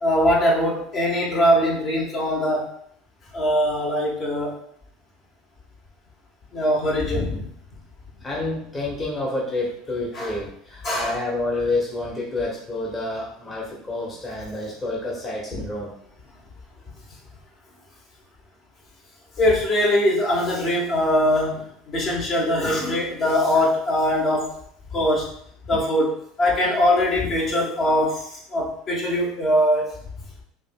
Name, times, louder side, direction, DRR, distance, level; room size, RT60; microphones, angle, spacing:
voice 1, 0.0-2.7 3.3-4.6 6.5-7.4 10.1-10.3 10.8-11.2 15.5-15.6 19.4-24.6 24.9-25.3 25.6-26.1 26.4-29.9, equal, 45° left, -3 dB, 1.2 m, -22 dB
voice 2, 8.2-15.9, left 2 dB, 25° left, -3 dB, 1.2 m, -28 dB
5.0 x 2.6 x 2.3 m, 0.67 s
hypercardioid pair, 75°, 0 cm